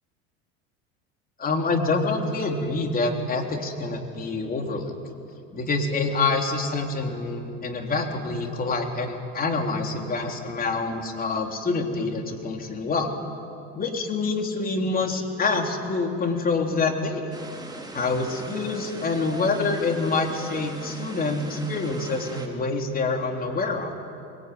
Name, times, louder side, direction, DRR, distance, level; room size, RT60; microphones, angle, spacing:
voice 1, 1.4-4.9 5.5-13.1 13.7-17.4 17.9-23.9, left 3 dB, 30° left, 3 dB, 3.6 m, -26 dB
sound 1, 17.3-22.5, right 2 dB, 15° right, 3.6 m, -40 dB
25.0 x 22.0 x 9.6 m, 2.5 s
supercardioid pair, 110°, 31 cm